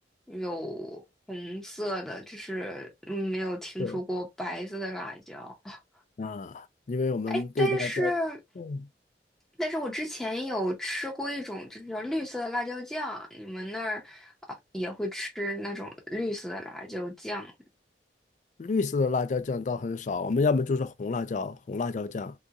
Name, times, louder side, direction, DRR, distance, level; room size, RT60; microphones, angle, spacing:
voice 1, 0.3-1.0 1.3-5.8 7.3-8.4 9.6-17.5, equal, 5° left, 0.7 m, -33 dB
voice 2, 6.2-8.1 8.6-8.8 18.6-22.3, left 4 dB, 40° left, 0.3 m, -29 dB
3.6 x 2.8 x 2.4 m
head